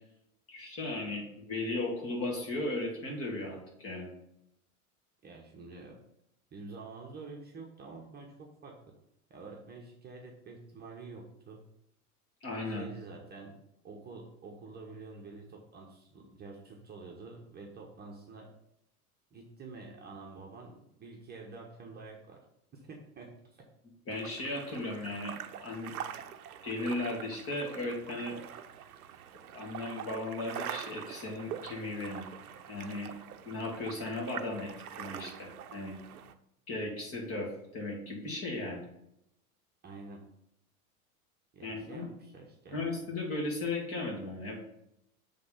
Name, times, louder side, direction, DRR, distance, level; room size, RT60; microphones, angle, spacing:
voice 1, 0.5-4.1 12.4-12.9 24.1-25.9 26.6-28.4 29.5-32.3 32.7-33.1 33.4-34.7 35.0-36.0 36.7-38.8 41.6-42.1 42.7-44.6, left 2 dB, 30° left, -1 dB, 2.5 m, -36 dB
voice 2, 5.2-6.0 6.5-8.9 9.3-11.6 12.6-13.6 13.8-18.5 19.3-22.4 22.7-23.6 39.8-40.2 41.5-42.8, right 3 dB, 20° right, 0 dB, 1.1 m, -48 dB
sound 1, 24.1-36.3, right 9 dB, 70° right, 0.7 m, -44 dB
7.5 x 3.7 x 5.6 m, 0.81 s
hypercardioid pair, 90°, 45 cm